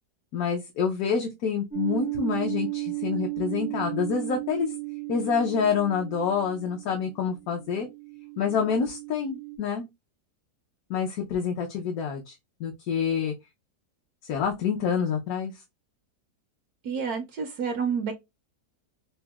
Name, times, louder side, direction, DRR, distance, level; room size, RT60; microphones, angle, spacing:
voice 1, 0.3-4.7 5.1-7.9 8.4-9.9 10.9-12.3 12.6-13.3 14.2-15.5, left 6 dB, 70° left, 1.1 m, -27 dB
sound 1, 1.7-9.6, right 25 dB, 40° left, 0.7 m, -35 dB
voice 2, 16.8-18.1, right 6 dB, 75° right, 1.1 m, -29 dB
5.8 x 2.1 x 2.3 m
omnidirectional pair, 1.7 m